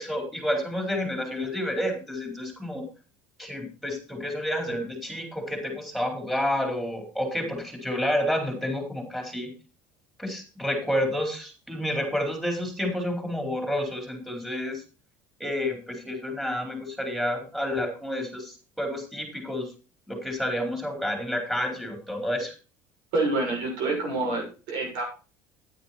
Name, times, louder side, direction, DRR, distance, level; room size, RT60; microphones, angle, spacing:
voice 1, 0.0-2.8 3.4-9.5 10.2-14.8 15.4-19.7 20.1-22.5, left 1 dB, 5° right, 3 dB, 4.3 m, -29 dB
voice 2, 23.1-25.0, right 2 dB, 75° right, 1 dB, 6.8 m, -27 dB
10.0 x 9.4 x 4.4 m, 0.34 s
supercardioid pair, 95°, 8 cm